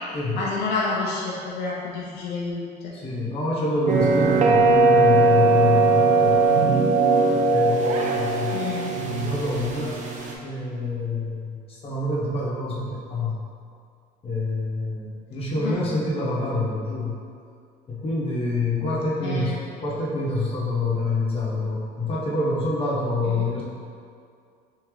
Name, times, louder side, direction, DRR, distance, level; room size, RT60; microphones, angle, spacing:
voice 1, 0.3-2.9 8.5-9.0 15.6-15.8 19.2-19.6 23.2-23.4, left 4 dB, 80° left, -5 dB, 0.6 m, -29 dB
voice 2, 2.9-6.4 7.5-8.6 9.2-13.4 14.2-17.2 17.9-23.6, left 2 dB, 35° left, -6 dB, 0.9 m, -27 dB
sound 1, 3.9-10.3, right 3 dB, 45° right, 0.5 m, -19 dB
3.6 x 2.8 x 3.1 m, 2.3 s
cardioid pair, 110°, 17 cm